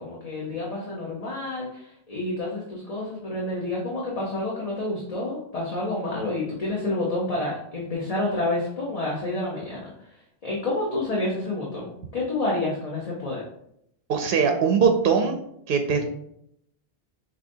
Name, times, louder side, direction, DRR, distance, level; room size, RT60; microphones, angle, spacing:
voice 1, 0.0-9.8 10.4-13.4, left 2 dB, 35° left, -4 dB, 1.0 m, -29 dB
voice 2, 14.1-15.4 15.7-16.1, right 6 dB, 65° right, 5 dB, 0.7 m, -21 dB
6.8 x 2.8 x 2.7 m, 0.72 s
omnidirectional pair, 1.1 m